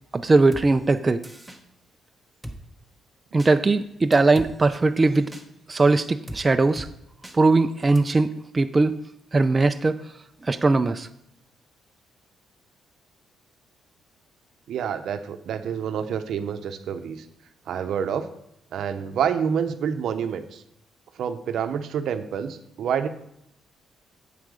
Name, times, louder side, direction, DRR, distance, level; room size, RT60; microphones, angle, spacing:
voice 1, 0.1-1.2 3.3-5.3 5.7-6.9 7.3-9.0 9.3-10.0 10.4-11.1, right 3 dB, 25° right, 8 dB, 0.4 m, -20 dB
Drum kit, 0.5-0.7 1.2-1.6 2.4-2.6 3.4-3.5 4.1-4.5 5.3-5.4 6.3-6.4 6.8-6.9 7.2-7.4 8.0-8.1, right 1 dB, 5° right, 1.0 m, -38 dB
voice 2, 14.7-17.3 17.7-18.3 18.7-20.6 21.2-23.1, right 7 dB, 70° right, 9 dB, 0.7 m, -28 dB
7.9 x 7.6 x 4.9 m, 0.77 s
cardioid pair, 95°, 0 cm